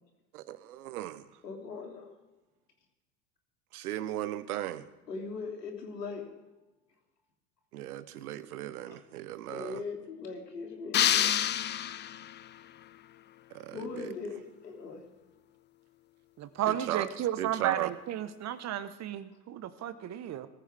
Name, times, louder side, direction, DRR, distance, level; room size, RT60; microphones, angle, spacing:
voice 1, 0.3-1.3 3.7-4.9 7.7-9.8 13.5-14.2 16.7-17.1 17.4-17.9, right 13 dB, 65° right, 15 dB, 1.1 m, -36 dB
voice 2, 1.4-2.1 5.1-6.2 8.9-9.0 9.5-11.4 13.7-15.0, left 4 dB, 80° left, 2 dB, 3.2 m, -40 dB
sound 1, 10.9-12.5, left 11 dB, 20° left, 0.6 m, -27 dB
voice 3, 16.4-20.5, right 11 dB, 35° right, 13 dB, 1.2 m, -33 dB
21.0 x 14.5 x 3.5 m, 1.1 s
figure-of-eight pair, 80°, 48 cm